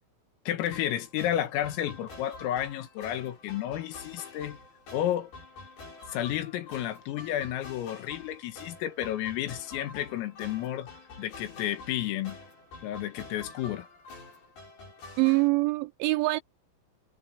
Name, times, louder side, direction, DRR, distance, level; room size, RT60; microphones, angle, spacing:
voice 1, 0.5-4.6 4.9-5.3 6.1-10.9 11.2-12.4 12.8-13.9, left 12 dB, 85° left, 4.4 m, -31 dB
chinese-loop, 0.7-15.5, left 3 dB, 45° left, 9.4 m, -47 dB
voice 2, 15.2-16.4, right 22 dB, 85° right, 2.7 m, -24 dB
omnidirectional pair, 5.9 m